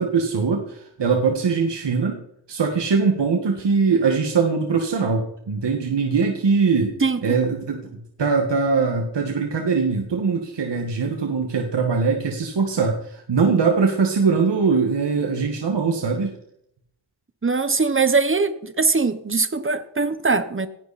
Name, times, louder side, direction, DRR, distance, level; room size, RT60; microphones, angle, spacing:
voice 1, 0.0-2.2 2.5-6.9 7.2-16.3, right 5 dB, 60° right, 2 dB, 2.0 m, -21 dB
voice 2, 17.4-20.7, right 4 dB, 25° right, 11 dB, 1.3 m, -21 dB
19.0 x 15.5 x 4.4 m, 0.76 s
wide cardioid pair, 135°, 46 cm